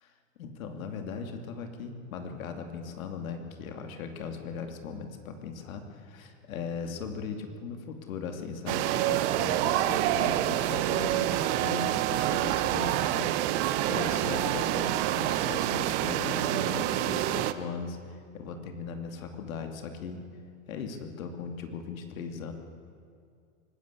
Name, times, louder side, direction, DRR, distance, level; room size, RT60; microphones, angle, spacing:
voice 1, 0.4-20.3 20.7-22.5, left 5 dB, 80° left, 6 dB, 2.7 m, -38 dB
sound 1, 8.7-17.5, right 13 dB, 55° right, 1.2 m, -27 dB
24.5 x 14.0 x 8.3 m, 2.4 s
hypercardioid pair, 120°, 41 cm